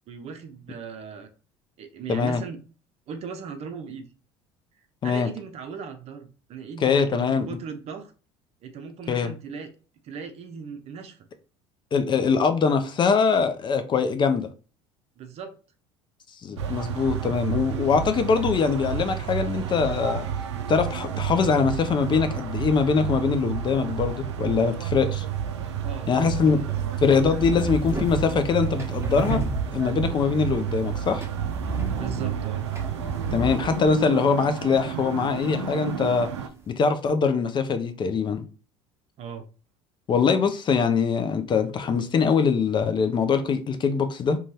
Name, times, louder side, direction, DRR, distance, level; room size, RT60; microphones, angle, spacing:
voice 1, 0.1-1.3 1.8-2.6 3.1-4.1 5.0-8.1 8.6-9.7 10.0-11.3 15.2-15.6 25.8-26.7 31.9-32.7 39.2-39.5, right 6 dB, 45° right, 0.6 m, -38 dB
voice 2, 2.1-2.4 5.0-5.3 6.8-7.5 9.1-9.3 11.9-14.5 16.4-20.3 20.7-25.3 26.1-26.6 27.0-29.4 29.7-31.2 33.3-36.3 36.7-38.4 40.1-44.4, left 5 dB, 35° left, 0.4 m, -23 dB
sound 1, 16.6-36.5, right 8 dB, 85° right, 0.4 m, -31 dB
sound 2, 25.6-36.7, right 3 dB, 20° right, 1.0 m, -35 dB
2.6 x 2.3 x 3.1 m
hypercardioid pair, 70°, 14 cm